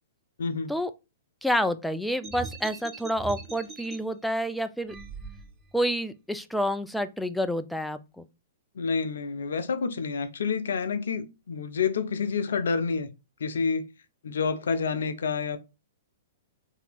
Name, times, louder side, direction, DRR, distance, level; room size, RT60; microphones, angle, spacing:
voice 1, 0.4-0.7 8.8-13.1 13.4-13.8 14.2-15.6, left 5 dB, 75° left, 0.5 m, -28 dB
voice 2, 1.4-5.0 5.7-8.3, equal, ahead, 0.3 m, -28 dB
sound 1, 2.2-4.0 4.8-5.8, right 4 dB, 25° right, 0.7 m, -41 dB
2.8 x 2.7 x 3.3 m
hypercardioid pair, 115°, 0 cm